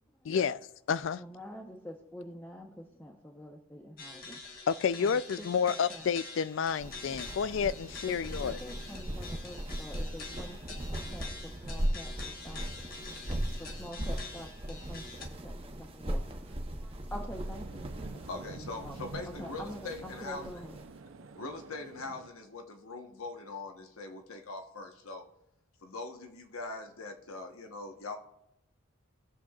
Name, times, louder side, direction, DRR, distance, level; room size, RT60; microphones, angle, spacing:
voice 1, 0.3-0.6 0.9-1.2 4.7-8.6, left 7 dB, 65° left, 0.3 m, -30 dB
voice 2, 1.2-4.4 5.0-6.1 8.1-17.9 18.1-18.3 18.5-19.0 19.2-20.8, equal, 10° left, 0.7 m, -47 dB
sound 1, 4.0-15.3, left 4 dB, 45° left, 1.3 m, -46 dB
sound 2, 6.6-20.8, right 1 dB, 25° right, 0.8 m, -38 dB
sound 3, 17.3-22.3, right 3 dB, 70° right, 0.6 m, -47 dB
voice 3, 18.3-20.5 21.3-25.2 25.8-28.2, left 3 dB, 90° left, 1.1 m, -42 dB
19.5 x 7.4 x 2.4 m
head